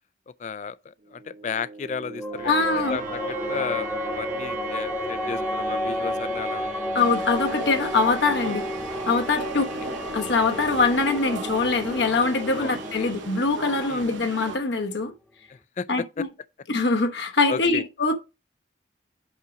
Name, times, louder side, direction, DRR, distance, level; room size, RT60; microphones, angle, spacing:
voice 1, 0.4-6.7 8.4-8.6 9.5-9.7 12.6-13.1 13.9-14.1 15.5-15.9 16.2-16.3 17.5-17.8, left 6 dB, 40° left, 0.3 m, -34 dB
sound 1, 1.0-14.1, right 4 dB, 40° right, 0.8 m, -39 dB
sound 2, 2.2-15.0, left 1 dB, 5° left, 0.8 m, -32 dB
voice 2, 2.4-3.0 6.9-8.6 9.1-9.7 10.1-15.1 15.9-16.3 16.7-18.1, left 3 dB, 70° left, 1.0 m, -23 dB
sound 3, 7.0-14.6, right 2 dB, 85° right, 0.9 m, -37 dB
5.4 x 4.9 x 4.9 m
head